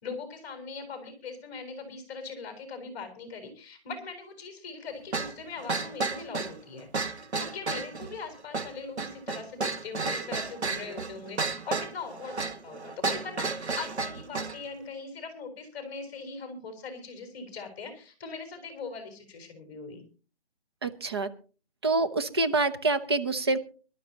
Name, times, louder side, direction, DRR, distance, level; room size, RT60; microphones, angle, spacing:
voice 1, 0.0-6.9 7.4-20.0, left 4 dB, 15° left, 5 dB, 4.2 m, -41 dB
sound 1, 5.1-14.6, right 4 dB, 85° right, 1.9 m, -32 dB
voice 2, 20.8-21.3 21.8-23.6, right 3 dB, 25° right, 8 dB, 0.8 m, -26 dB
24.0 x 12.5 x 2.9 m, 0.36 s
hypercardioid pair, 170°, 32 cm